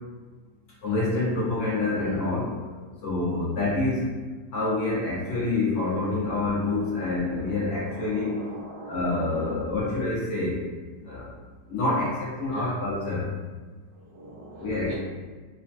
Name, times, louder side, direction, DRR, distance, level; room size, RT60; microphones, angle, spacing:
voice 1, 0.8-2.6 3.0-4.1 4.5-8.3 8.9-10.6 11.0-11.3 11.7-13.3 14.6-14.9, left 2 dB, 80° left, -7 dB, 1.9 m, -27 dB
voice 2, 3.1-3.6 5.7-5.9 6.8-9.7 12.5-12.8 13.9-14.9, right 2 dB, 80° right, -4 dB, 1.6 m, -42 dB
4.5 x 2.2 x 2.9 m, 1.4 s
omnidirectional pair, 1.9 m